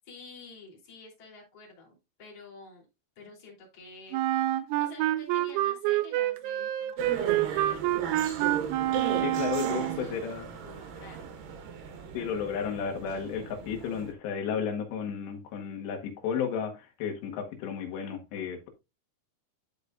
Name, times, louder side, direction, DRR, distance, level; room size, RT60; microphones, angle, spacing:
voice 1, 0.0-2.9 3.2-4.2 4.8-8.1 9.6-10.3 10.6-11.4, left 3 dB, 35° left, 4.0 m, -50 dB
Wind instrument woodwind instrument, 4.1-10.1, right 14 dB, 85° right, 3.0 m, -27 dB
sound 1, 7.0-14.1, right 7 dB, 65° right, 2.5 m, -37 dB
voice 2, 9.2-10.5 12.1-18.7, left 7 dB, 70° left, 3.6 m, -33 dB
12.5 x 5.3 x 2.5 m
omnidirectional pair, 5.3 m